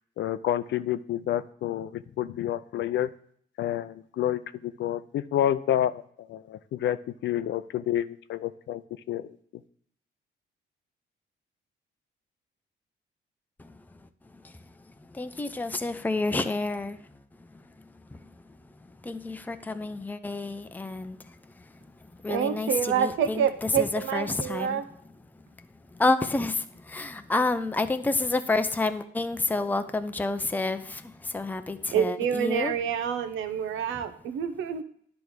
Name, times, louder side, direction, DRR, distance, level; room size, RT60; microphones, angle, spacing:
voice 1, 0.2-3.1 3.6-5.9 6.2-7.0 7.2-8.8 9.1-9.3, left 11 dB, 70° left, 14 dB, 0.5 m, -29 dB
voice 2, 15.1-17.0 18.1-18.2 19.0-21.3 22.2-24.8 25.9-32.7, left 3 dB, 10° left, 9 dB, 0.5 m, -29 dB
voice 3, 22.3-24.8 31.9-34.8, right 8 dB, 80° right, 10 dB, 0.9 m, -27 dB
10.5 x 3.5 x 6.2 m, 0.62 s
cardioid pair, 90°, 20 cm